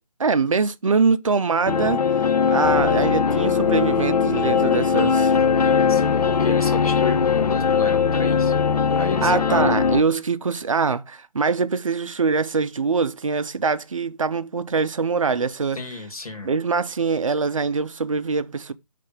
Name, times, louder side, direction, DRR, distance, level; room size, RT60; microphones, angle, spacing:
voice 1, 0.2-2.0 2.5-5.4 9.2-15.8 16.4-18.7, right 4 dB, 55° right, 0.6 m, -23 dB
sound 1, 1.7-10.0, left 6 dB, 85° left, 0.6 m, -20 dB
voice 2, 5.6-8.5 9.0-9.6 15.7-16.5, left 4 dB, 65° left, 2.0 m, -32 dB
5.2 x 3.3 x 5.6 m
hypercardioid pair, 180°, 20 cm